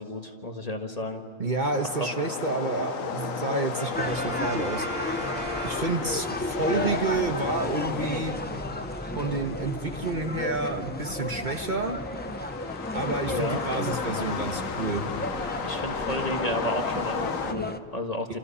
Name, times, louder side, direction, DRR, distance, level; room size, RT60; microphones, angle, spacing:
voice 1, 0.0-1.2 2.0-2.1 6.6-6.9 13.2-13.6 15.6-18.4, left 1 dB, 30° left, 4 dB, 1.6 m, -32 dB
voice 2, 1.4-4.9 5.6-8.4 9.2-12.0 12.9-15.0, right 3 dB, 40° right, 4 dB, 1.3 m, -29 dB
sound 1, 1.7-17.5, left 5 dB, 85° left, 1.6 m, -35 dB
Brass instrument, 3.7-6.4, right 1 dB, 55° right, 7.9 m, -36 dB
sound 2, 3.9-17.8, left 2 dB, 10° left, 0.5 m, -34 dB
28.5 x 28.0 x 5.6 m, 2.6 s
omnidirectional pair, 1.3 m